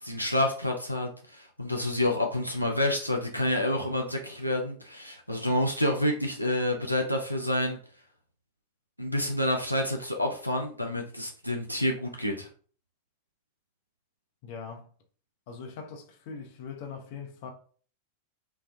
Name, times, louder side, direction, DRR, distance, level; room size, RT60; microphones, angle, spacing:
voice 1, 0.0-7.8 9.0-12.5, left 1 dB, 90° left, 0.4 m, -28 dB
voice 2, 14.4-14.9 15.5-17.5, left 5 dB, 50° left, 0.6 m, -41 dB
3.9 x 2.2 x 2.6 m
figure-of-eight pair, 90°, 0 cm